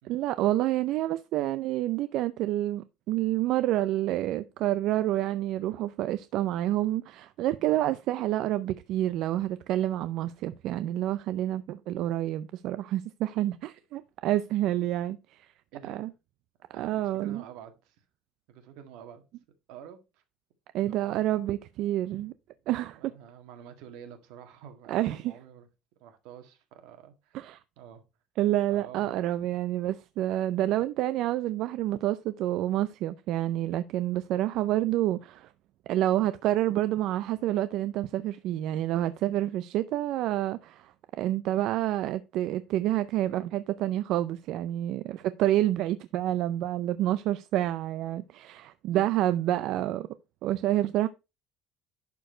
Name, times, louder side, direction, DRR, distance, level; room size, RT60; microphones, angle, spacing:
voice 1, 0.0-15.5 15.9-16.1 16.8-17.4 20.7-22.3 22.7-23.1 24.9-25.3 27.3-27.6 28.4-35.5 35.9-50.1 50.4-51.1, right 14 dB, 55° right, 0.4 m, -28 dB
voice 2, 15.7-16.1 16.7-18.0 18.5-19.2 19.7-20.2 20.8-21.5 23.0-25.7 26.0-27.5 27.8-28.0 28.7-29.1 48.9-49.1 49.7-49.9, right 9 dB, 75° right, 1.9 m, -48 dB
11.5 x 4.6 x 4.4 m
cardioid pair, 165°, 0 cm